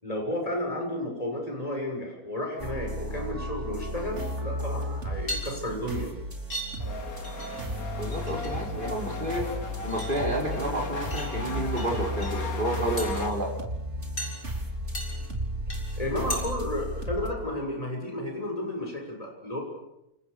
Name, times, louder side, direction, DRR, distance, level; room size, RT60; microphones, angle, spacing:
voice 1, 0.0-6.1 16.0-19.6, left 1 dB, 25° left, 1 dB, 7.0 m, -32 dB
sound 1, 2.6-17.3, equal, 50° right, 4.3 m, -34 dB
sound 2, 5.2-6.0 6.5-6.7 7.0-7.8 8.0-8.5 8.8-9.5 9.9-10.7 11.1-11.9 12.1-12.3 13.0-13.3 14.2-14.4 14.9-15.3 15.7-16.0 16.3-16.4, equal, 55° left, 7.4 m, -36 dB
sound 3, 6.8-13.3, left 3 dB, 70° left, 3.0 m, -38 dB
voice 2, 8.0-9.5 9.8-13.5, right 1 dB, 35° right, 0 dB, 5.7 m, -30 dB
29.0 x 29.0 x 7.0 m, 0.87 s
omnidirectional pair, 1.6 m